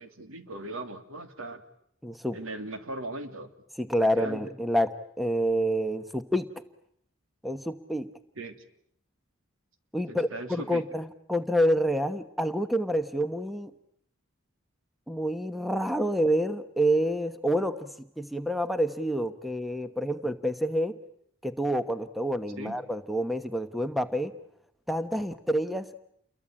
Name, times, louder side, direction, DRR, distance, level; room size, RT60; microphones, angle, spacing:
voice 1, 0.0-1.6 2.3-3.5 4.0-4.5 8.4-8.5 10.1-10.8 22.6-22.8, right 2 dB, 90° right, 8 dB, 2.9 m, -38 dB
voice 2, 2.0-2.4 3.8-4.9 5.2-6.5 7.4-8.1 9.9-13.7 15.1-17.9 18.2-21.0 21.4-24.3 24.9-26.0, equal, ahead, 10 dB, 1.1 m, -28 dB
29.5 x 22.5 x 8.9 m, 0.70 s
head